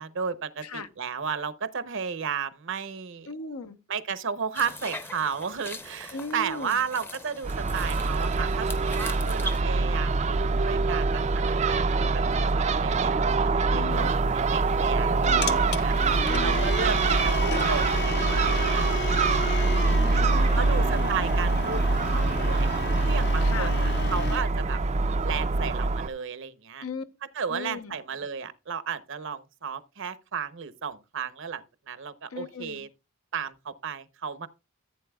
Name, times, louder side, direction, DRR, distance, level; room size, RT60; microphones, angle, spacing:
voice 1, 0.0-3.3 3.9-12.2 12.6-15.9 16.4-17.0 17.2-19.7 20.5-22.7 23.0-24.8 25.2-26.8 27.3-32.9 33.3-34.5, right 6 dB, 60° right, 0.8 m, -34 dB
voice 2, 3.3-3.8 6.1-6.8 13.7-14.1 15.2-15.6 16.3-16.7 19.9-21.2 23.4-23.7 26.8-27.0 27.5-28.0 32.3-32.8, left 4 dB, 85° left, 0.9 m, -37 dB
sound 1, 4.5-9.6, left 1 dB, 10° left, 0.6 m, -41 dB
Crow / Gull seagull, 7.4-26.1, right 3 dB, 30° right, 0.4 m, -24 dB
sound 2, 13.9-24.4, left 4 dB, 50° left, 0.7 m, -34 dB
14.5 x 8.5 x 2.3 m
head